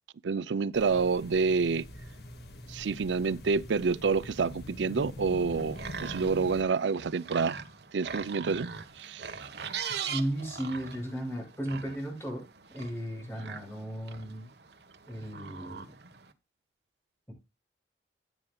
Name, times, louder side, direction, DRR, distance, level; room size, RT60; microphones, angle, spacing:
voice 1, 0.2-1.9 2.7-7.6 7.9-8.7 9.0-9.3, right 5 dB, 90° right, 0.5 m, -28 dB
sound 1, 0.7-6.6, left 1 dB, 65° left, 1.8 m, -44 dB
sound 2, 5.5-16.3, right 6 dB, 70° right, 1.3 m, -42 dB
voice 2, 9.9-12.4 12.7-14.5 15.1-15.9 17.3-17.4, right 1 dB, 15° left, 6.3 m, -35 dB
15.0 x 9.0 x 2.3 m
head